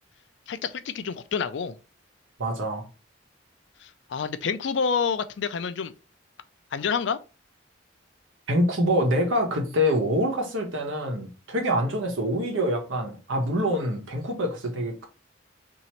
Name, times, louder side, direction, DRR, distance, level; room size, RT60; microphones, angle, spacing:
voice 1, 0.5-1.7 3.8-5.9 6.7-7.2, left 6 dB, 65° left, 0.4 m, -28 dB
voice 2, 2.4-2.9 8.5-15.1, equal, 85° right, 1.1 m, -25 dB
3.0 x 2.7 x 4.3 m
head